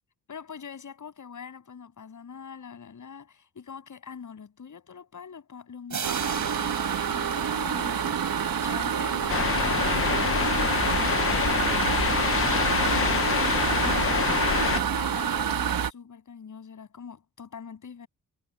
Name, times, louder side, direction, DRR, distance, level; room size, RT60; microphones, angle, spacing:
voice 1, 0.3-6.8 7.1-8.2 8.6-13.3 13.7-18.1, left 6 dB, 60° left, 7.4 m, -44 dB
sound 1, 5.9-8.6, right 6 dB, 55° right, 6.3 m, -38 dB
sound 2, 6.0-15.9, right 7 dB, 75° right, 1.3 m, -27 dB
sound 3, 9.3-14.8, left 7 dB, 40° left, 0.7 m, -26 dB
wide cardioid pair, 120°, 35 cm